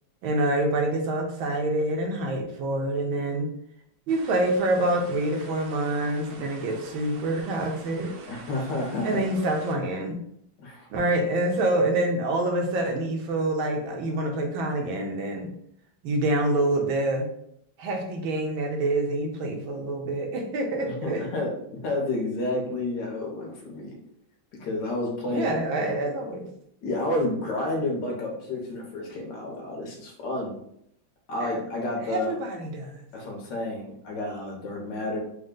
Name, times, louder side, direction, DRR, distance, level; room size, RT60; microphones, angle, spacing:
voice 1, 0.2-3.5 4.1-8.1 9.0-10.2 10.9-15.5 16.0-17.3 17.8-21.2 25.3-26.5 31.4-31.6 32.1-33.0, right 1 dB, 85° right, 2 dB, 1.5 m, -26 dB
sound 1, 4.1-9.8, right 4 dB, 70° right, 0.9 m, -46 dB
voice 2, 8.3-9.2 10.6-10.9 20.9-23.9 24.5-25.5 26.8-30.6 31.3-32.3 33.1-35.2, left 2 dB, 65° left, 0 dB, 1.5 m, -30 dB
4.3 x 2.2 x 3.7 m, 0.72 s
omnidirectional pair, 2.2 m